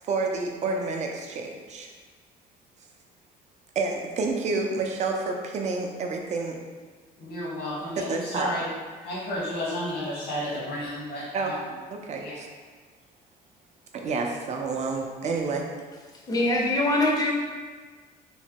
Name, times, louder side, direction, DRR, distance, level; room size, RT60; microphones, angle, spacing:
voice 1, 0.0-1.9 3.8-6.6 8.0-8.5 11.3-11.5 12.0-12.5 13.9-15.6, right 3 dB, 45° right, 2 dB, 0.4 m, -29 dB
voice 2, 7.2-8.7 9.0-11.6 12.2-12.4, left 1 dB, 85° left, -7 dB, 1.2 m, -32 dB
voice 3, 16.3-17.3, left 1 dB, 20° left, -1 dB, 0.5 m, -23 dB
3.1 x 2.1 x 2.8 m, 1.5 s
cardioid pair, 110°, 17 cm